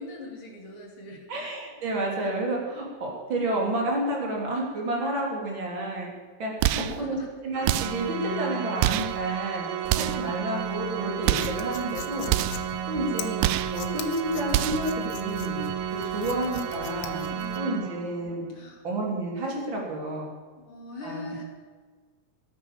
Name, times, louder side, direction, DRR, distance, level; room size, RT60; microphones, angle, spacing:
voice 1, 0.0-1.2 6.6-7.3 9.6-10.4 17.3-18.0 18.5-18.8 20.6-21.4, left 2 dB, 40° left, 0 dB, 3.6 m, -42 dB
voice 2, 1.3-6.1 6.4-6.5 7.0-9.7 9.9-13.4 13.6-15.6 15.9-17.2 17.6-18.5 18.8-20.3 21.0-21.4, right 1 dB, 35° right, -1 dB, 3.9 m, -30 dB
sound 1, 6.6-7.0 7.7-8.1 8.8-9.2 9.9-10.3 11.2-11.6 12.3-12.7 13.4-13.8 14.5-14.9, right 14 dB, 85° right, 2.3 m, -26 dB
Organ, 7.5-18.4, right 9 dB, 70° right, 2.0 m, -33 dB
sound 2, 10.6-17.6, left 8 dB, 80° left, 1.1 m, -42 dB
16.0 x 9.7 x 7.5 m, 1.5 s
omnidirectional pair, 3.9 m